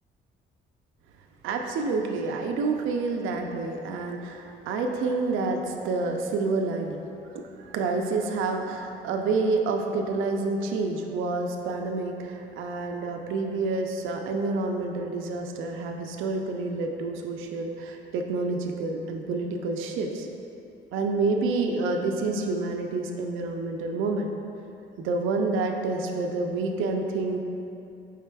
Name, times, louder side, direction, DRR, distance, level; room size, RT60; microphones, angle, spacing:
voice 1, 1.4-7.0 7.3-20.3 20.9-24.3 25.0-27.4, right 3 dB, 90° right, 3 dB, 0.4 m, -28 dB
5.1 x 4.6 x 2.2 m, 2.7 s
cardioid pair, 90°, 20 cm